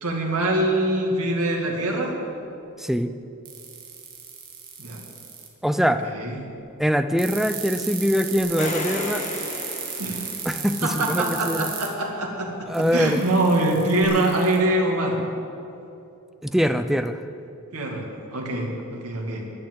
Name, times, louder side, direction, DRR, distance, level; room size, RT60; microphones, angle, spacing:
voice 1, 0.0-2.2 4.8-5.0 6.0-6.4 10.0-10.3 10.8-12.5 12.8-15.2 17.7-18.0 18.3-19.4, right 1 dB, 90° right, 0 dB, 2.3 m, -24 dB
voice 2, 2.8-3.1 5.6-6.1 6.8-9.3 10.5-11.7 12.7-13.2 16.4-17.2, equal, ahead, 10 dB, 0.4 m, -23 dB
sound 1, 3.5-5.5 7.2-11.9 12.7-14.6, right 8 dB, 45° right, 1.8 m, -34 dB
sound 2, 8.4-10.9 14.0-14.1, left 2 dB, 35° left, 1.4 m, -33 dB
10.5 x 10.5 x 7.8 m, 2.7 s
head